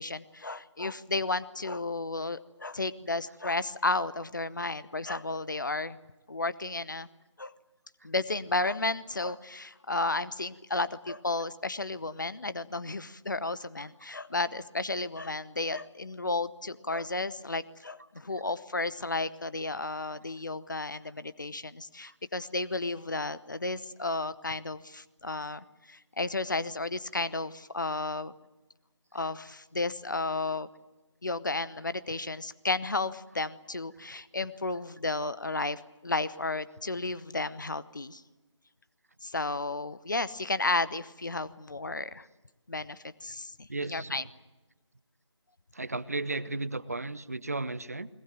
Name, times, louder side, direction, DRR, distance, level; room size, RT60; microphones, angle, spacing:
voice 1, 0.0-6.0 6.3-7.1 7.4-7.5 8.0-28.3 29.1-30.7 31.2-38.2 39.2-42.3 42.7-44.2, left 3 dB, 40° left, 16 dB, 0.9 m, -33 dB
voice 2, 43.7-44.2 45.7-48.1, right 2 dB, 30° right, 17 dB, 0.7 m, -34 dB
21.5 x 21.0 x 9.1 m, 1.1 s
figure-of-eight pair, 165°, 16 cm